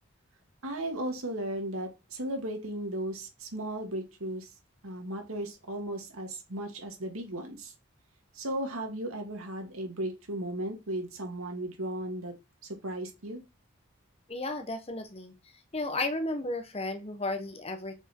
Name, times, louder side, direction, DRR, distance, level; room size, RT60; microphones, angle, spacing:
voice 1, 0.6-4.5 4.8-7.7 8.3-12.3 12.6-13.4, right 1 dB, 85° right, 3 dB, 2.3 m, -36 dB
voice 2, 14.3-15.3 15.7-18.1, left 2 dB, 30° left, 8 dB, 1.0 m, -33 dB
6.0 x 5.3 x 4.5 m, 0.25 s
head